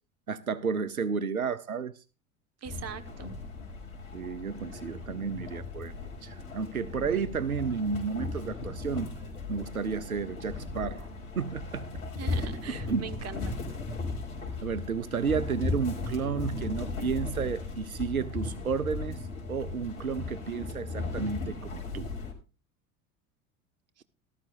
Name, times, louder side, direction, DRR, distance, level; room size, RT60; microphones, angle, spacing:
voice 1, 0.3-2.0 4.1-5.9 6.2-9.2 9.5-11.1 11.4-11.9 12.9-13.1 14.6-19.2 19.5-22.1, right 5 dB, 90° right, 0.7 m, -32 dB
sound 1, 2.6-22.3, left 3 dB, 60° left, 5.1 m, -37 dB
voice 2, 2.6-3.4 12.2-13.4 24.0-24.1, right 8 dB, 35° right, 1.8 m, -41 dB
18.5 x 13.5 x 2.6 m
figure-of-eight pair, 75°, 42 cm